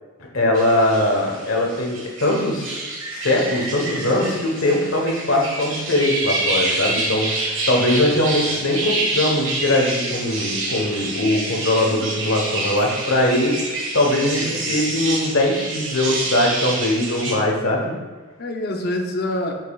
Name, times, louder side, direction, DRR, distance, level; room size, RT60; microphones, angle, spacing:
voice 1, 0.3-2.8 3.1-17.9, left 1 dB, 80° left, 0 dB, 1.2 m, -21 dB
sound 1, 0.5-17.3, right 2 dB, 65° right, 1.6 m, -27 dB
voice 2, 7.8-8.6 14.2-14.9 18.4-19.5, left 1 dB, 50° left, 3 dB, 0.7 m, -28 dB
7.7 x 5.3 x 2.4 m, 1.4 s
head